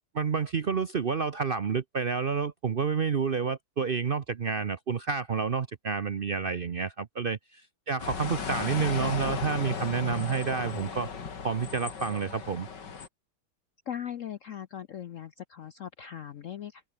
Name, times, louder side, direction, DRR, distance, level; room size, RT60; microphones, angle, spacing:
voice 1, 0.1-7.6 7.9-11.1 11.4-12.7, right 5 dB, 80° right, 0.4 m, -29 dB
sound 1, 8.0-13.1, left 6 dB, 60° left, 2.8 m, -36 dB
voice 2, 13.9-16.8, left 9 dB, 80° left, 0.7 m, -39 dB
omnidirectional pair, 2.2 m